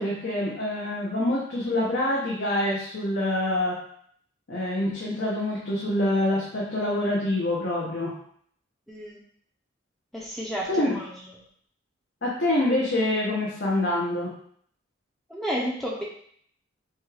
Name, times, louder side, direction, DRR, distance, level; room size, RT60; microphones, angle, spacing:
voice 1, 0.0-3.7 4.5-8.1 10.7-11.0 12.2-14.3, left 1 dB, 60° left, -5 dB, 0.9 m, -26 dB
voice 2, 8.9-9.2 10.1-11.4 15.3-16.0, equal, ahead, -4 dB, 0.6 m, -32 dB
6.2 x 2.4 x 3.3 m, 0.63 s
head